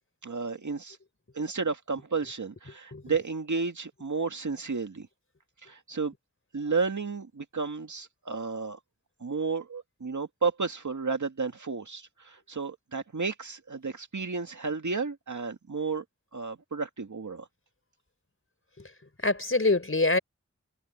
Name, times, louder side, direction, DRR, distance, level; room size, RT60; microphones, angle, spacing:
voice 1, 0.2-1.0 1.3-5.1 5.6-6.1 6.5-8.8 9.2-16.0 16.3-17.5, right 4 dB, 80° right, 2.2 m, -32 dB
voice 2, 19.2-20.2, left 2 dB, 45° left, 5.1 m, -25 dB
wide cardioid pair, 40°, 30 cm